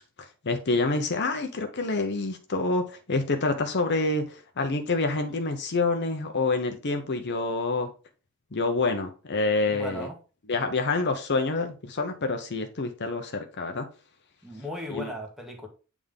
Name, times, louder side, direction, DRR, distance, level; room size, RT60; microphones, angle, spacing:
voice 1, 0.4-7.9 8.5-10.1 10.5-13.9 14.9-15.1, left 3 dB, 55° left, 0.8 m, -27 dB
voice 2, 9.7-10.1 14.4-15.7, equal, ahead, 1.5 m, -37 dB
8.4 x 3.6 x 3.6 m
head